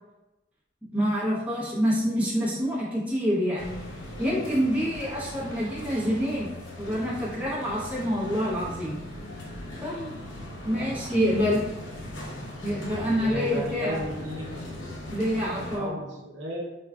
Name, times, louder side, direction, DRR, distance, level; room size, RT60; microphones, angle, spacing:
voice 1, 0.9-3.8 4.2-6.5 6.8-8.9 9.8-10.1 10.6-11.6 12.6-14.0 15.1-16.0, equal, 5° right, -9 dB, 0.8 m, -27 dB
sound 1, 3.6-15.8, left 1 dB, 85° left, 0.8 m, -39 dB
voice 2, 10.6-11.5 13.2-14.5 15.5-16.6, right 1 dB, 65° right, -4 dB, 0.8 m, -35 dB
4.5 x 2.3 x 2.3 m, 1.0 s
head